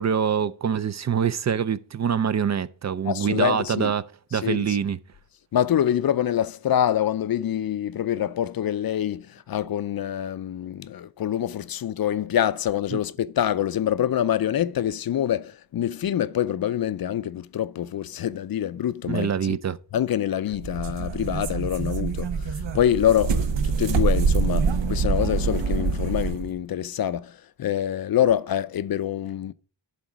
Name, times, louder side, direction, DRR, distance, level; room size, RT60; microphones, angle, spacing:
voice 1, 0.0-4.0 4.3-5.0 12.9-13.0 19.1-19.8, right 7 dB, 40° right, 0.4 m, -25 dB
voice 2, 3.0-3.9 4.4-4.8 5.5-19.6 19.9-29.5, left 10 dB, 55° left, 0.5 m, -25 dB
sound 1, 20.5-26.5, right 5 dB, 75° right, 1.1 m, -25 dB
11.0 x 3.9 x 6.0 m
wide cardioid pair, 110°, 43 cm